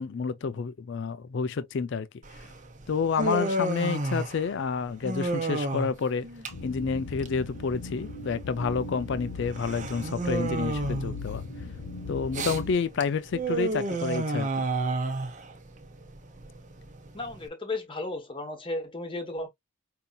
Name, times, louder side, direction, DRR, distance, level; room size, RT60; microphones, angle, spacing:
voice 1, 0.0-2.1 2.4-2.5 2.9-6.3 6.6-11.4 12.1-14.7, left 5 dB, 55° left, 0.4 m, -29 dB
Human voice, 2.2-17.5, right 2 dB, 35° right, 0.8 m, -32 dB
sound 1, 6.5-12.7, left 3 dB, 90° left, 0.7 m, -39 dB
voice 2, 17.1-19.5, left 2 dB, 25° left, 1.0 m, -34 dB
5.2 x 2.8 x 2.3 m
head